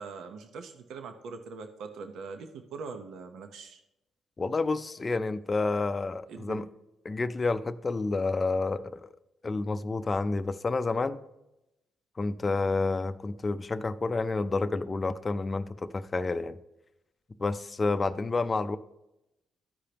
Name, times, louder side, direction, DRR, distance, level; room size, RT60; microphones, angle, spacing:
voice 1, 0.0-3.8 6.3-6.6, right 4 dB, 75° right, 0.8 m, -42 dB
voice 2, 4.4-6.6 7.0-9.1 9.4-11.2 12.2-16.6 17.4-18.8, left 3 dB, 30° left, 0.5 m, -29 dB
13.5 x 5.0 x 2.9 m
cardioid pair, 90°, 0 cm